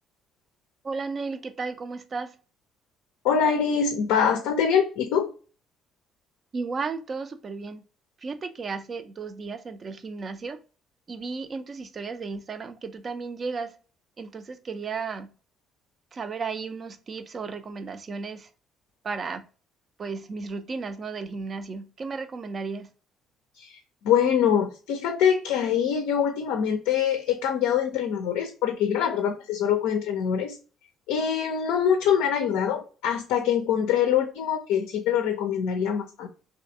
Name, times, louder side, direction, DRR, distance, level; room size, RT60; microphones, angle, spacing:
voice 1, 0.8-2.3 6.5-7.8 8.2-10.6 11.1-13.8 14.2-15.3 16.1-18.5 19.0-19.4 20.0-22.9, right 4 dB, 40° right, 0.4 m, -34 dB
voice 2, 3.2-5.3 23.6-23.8 24.0-30.6 31.1-36.3, left 8 dB, 65° left, 0.4 m, -24 dB
3.1 x 2.7 x 2.5 m
figure-of-eight pair, 50°, 0 cm